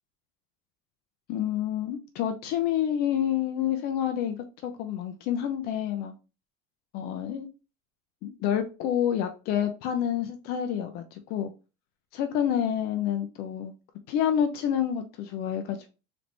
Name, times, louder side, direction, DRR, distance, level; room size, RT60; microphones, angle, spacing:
voice 1, 1.3-4.4 4.6-6.1 6.9-7.5 8.2-11.5 12.1-13.7 14.1-15.9, left 9 dB, 50° left, 0.5 m, -28 dB
3.9 x 3.2 x 3.2 m
cardioid pair, 170°, 21 cm